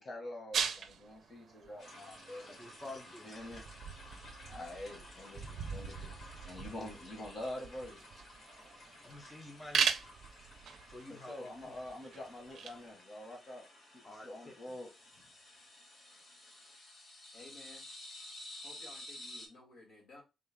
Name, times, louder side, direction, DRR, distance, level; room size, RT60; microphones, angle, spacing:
voice 1, 0.0-2.5 3.2-3.7 4.5-8.1 11.1-13.7 13.9-14.9, left 1 dB, 40° left, 1.6 m, -46 dB
sound 1, 0.5-12.9, right 7 dB, 70° right, 0.5 m, -40 dB
sound 2, 1.8-19.5, left 1 dB, 55° left, 1.9 m, -53 dB
voice 2, 2.5-3.3 9.0-9.9 10.8-11.8 14.0-14.6, left 2 dB, 15° left, 0.7 m, -49 dB
voice 3, 17.3-17.9 18.6-20.2, left 2 dB, 90° left, 1.8 m, -55 dB
3.7 x 2.4 x 3.5 m
cardioid pair, 120°, 0 cm